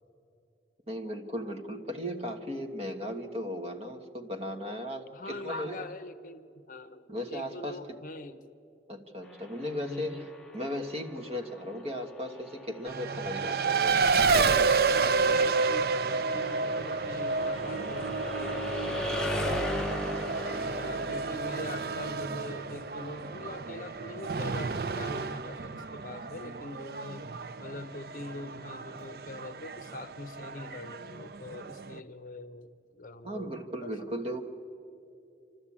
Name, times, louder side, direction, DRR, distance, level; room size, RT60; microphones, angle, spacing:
voice 1, 0.9-5.9 7.1-7.8 8.9-10.2 10.5-14.3 15.3-15.5 33.2-34.4, equal, 35° right, 4 dB, 1.4 m, -37 dB
voice 2, 5.1-8.4 9.9-10.3 14.9-18.9 20.7-27.3 27.6-33.5 33.8-33.9, left 2 dB, 50° left, 11 dB, 0.7 m, -43 dB
sound 1, 9.2-25.1, left 1 dB, 5° left, 0.8 m, -39 dB
Race car auto racing, 12.9-32.0, right 4 dB, 55° right, 0.5 m, -30 dB
27.5 x 12.5 x 8.6 m, 2.6 s
head